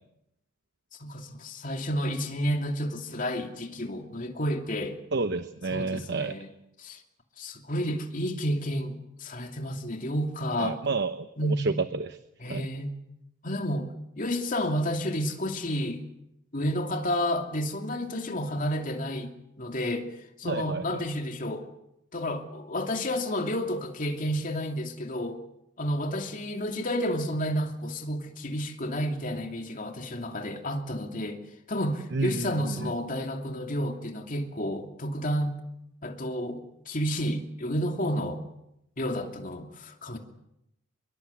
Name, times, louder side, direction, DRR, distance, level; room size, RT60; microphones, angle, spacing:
voice 1, 1.0-5.0 5.7-6.5 6.8-7.0 7.4-10.8 11.4-11.7 12.4-12.9 13.4-13.9 14.2-16.0 16.5-20.1 20.4-21.7 22.1-25.4 25.8-31.4 31.7-35.6 36.0-38.4 39.0-40.2, equal, 40° left, 4 dB, 2.7 m, -31 dB
voice 2, 5.1-6.4 10.6-11.2 11.6-11.7 12.0-12.2 12.5-12.7 20.4-21.0 32.1-32.9, right 3 dB, 60° right, 11 dB, 0.9 m, -30 dB
24.0 x 22.5 x 8.4 m, 0.83 s
head